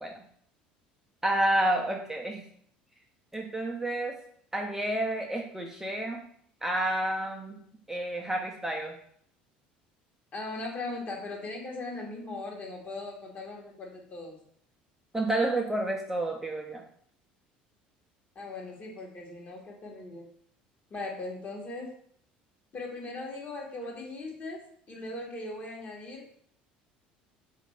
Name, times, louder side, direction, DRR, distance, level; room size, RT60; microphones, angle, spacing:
voice 1, 1.2-2.4 3.3-4.1 4.5-6.2 6.6-7.5 7.9-8.9 15.1-16.8, right 1 dB, 10° right, 0 dB, 0.5 m, -29 dB
voice 2, 10.3-14.4 18.3-20.3 20.9-22.0 22.7-26.4, left 2 dB, 35° left, -1 dB, 1.1 m, -39 dB
3.3 x 2.5 x 3.2 m, 0.63 s
hypercardioid pair, 65°, 4 cm